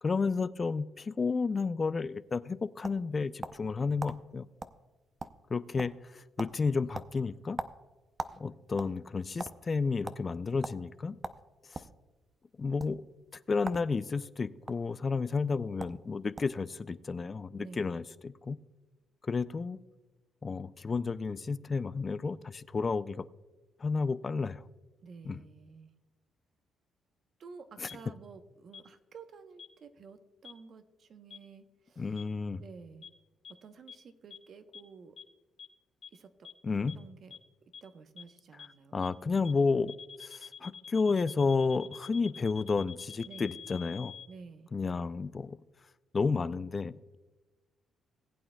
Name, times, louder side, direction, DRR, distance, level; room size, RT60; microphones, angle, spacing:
voice 1, 0.0-4.5 5.5-7.6 8.4-11.2 11.7-11.8 12.6-13.0 13.5-18.6 19.2-19.8 20.4-23.3 23.8-24.6 25.2-25.4 27.8-27.9 32.0-32.6 36.6-37.0 38.9-39.9 40.2-44.2 44.7-45.6 46.1-47.2, left 4 dB, 35° left, 15 dB, 0.4 m, -31 dB
sound 1, 2.3-3.7 4.0-4.2 4.6-4.8 5.0-5.5 5.8-6.1 6.4-6.6 6.9-8.4 8.7-9.5 10.0-10.2 10.6-10.8 11.2-11.9 12.7-12.9 13.6-13.9 14.2-14.7 15.5-15.6 15.8-16.0 16.4-16.6, right 3 dB, 30° right, 0.6 m, -40 dB
voice 2, 17.6-18.1 25.0-25.9 27.4-32.2 32.6-33.1 33.5-35.2 36.1-37.4 37.8-39.0 43.3-43.6 44.3-44.7, right 5 dB, 55° right, 8 dB, 0.9 m, -51 dB
sound 2, 27.9-28.0 28.7-28.8 29.6-29.7 30.4-30.5 31.3-31.4 32.2-32.3 33.0-33.1 33.4-33.5 33.9-34.0 34.3-34.4 34.7-34.8 35.2-35.3 35.6-35.7 36.0-36.1 36.4-36.5 36.9-37.0 37.3-37.4 37.7-37.8 38.2-38.3 38.6-38.7 39.0-39.1 39.4-39.5 39.9-44.3, left 7 dB, 60° left, 1.7 m, -46 dB
19.5 x 8.6 x 2.2 m, 1.2 s
cardioid pair, 90°, 0 cm